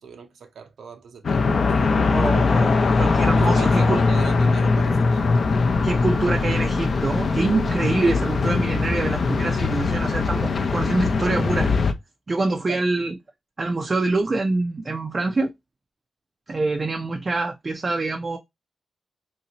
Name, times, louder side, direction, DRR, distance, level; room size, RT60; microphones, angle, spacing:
voice 1, 0.0-2.3 3.2-5.2 12.7-12.8, right 6 dB, 80° right, 0.6 m, -38 dB
sound 1, 1.2-11.9, left 4 dB, 45° left, 0.5 m, -21 dB
voice 2, 1.8-4.0 5.8-11.7 12.3-13.2 13.6-15.5 16.5-18.4, right 3 dB, 30° right, 0.4 m, -25 dB
3.0 x 2.7 x 2.8 m
wide cardioid pair, 150°, 0 cm